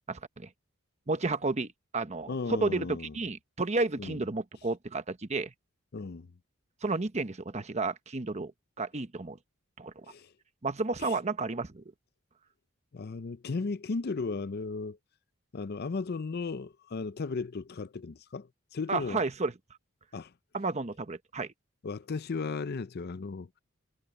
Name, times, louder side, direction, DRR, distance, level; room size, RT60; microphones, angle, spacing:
voice 1, 0.1-0.5 1.1-5.5 6.8-8.5 8.8-9.4 9.8-9.9 10.6-11.8 18.9-19.5 20.5-21.5, right 3 dB, 35° right, 1.0 m, -32 dB
voice 2, 2.3-3.1 4.0-4.2 5.9-6.3 10.0-10.3 11.0-11.1 12.9-15.0 15.5-19.2 20.1-20.3 21.8-23.6, left 4 dB, 50° left, 0.5 m, -35 dB
head